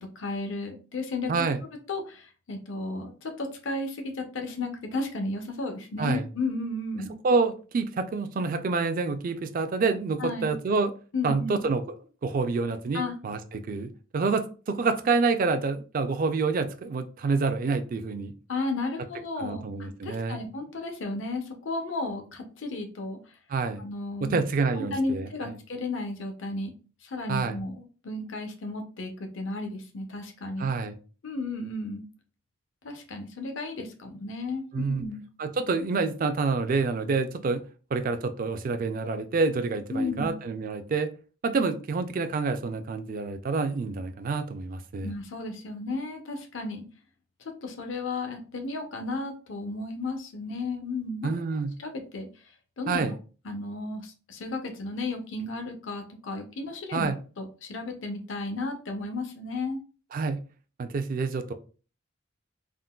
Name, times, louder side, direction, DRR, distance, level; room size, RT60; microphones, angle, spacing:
voice 1, 0.0-1.5 1.9-7.1 10.2-10.6 11.1-11.6 12.9-13.1 18.5-19.7 20.0-23.2 23.8-24.4 24.7-26.7 27.0-30.7 31.2-32.0 32.8-35.2 39.9-40.4 45.0-46.8 47.6-51.3 51.8-52.3 52.8-53.1 53.4-57.1 57.4-59.8, left 2 dB, 65° left, 4 dB, 0.6 m, -33 dB
voice 2, 1.3-1.6 6.0-6.2 7.2-10.9 11.2-11.8 12.2-13.4 13.7-18.3 19.4-20.4 23.5-23.8 24.2-25.6 27.3-27.6 30.6-31.0 34.7-35.0 35.4-37.6 37.9-41.1 41.4-45.1 51.2-51.7 52.9-53.1 56.9-57.2 60.1-60.4 60.8-61.5, right 4 dB, 45° right, 9 dB, 0.3 m, -27 dB
3.7 x 2.2 x 2.2 m, 0.36 s
head